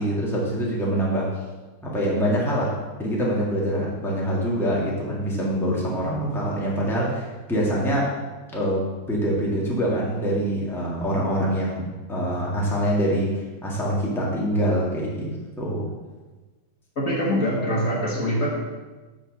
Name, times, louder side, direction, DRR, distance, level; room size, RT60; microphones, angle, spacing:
voice 1, 0.0-1.3 1.8-2.7 3.0-8.1 8.5-15.9, equal, ahead, -5 dB, 1.6 m, -25 dB
voice 2, 17.0-18.5, equal, 50° left, -4 dB, 1.9 m, -24 dB
8.9 x 4.3 x 6.4 m, 1.3 s
omnidirectional pair, 1.9 m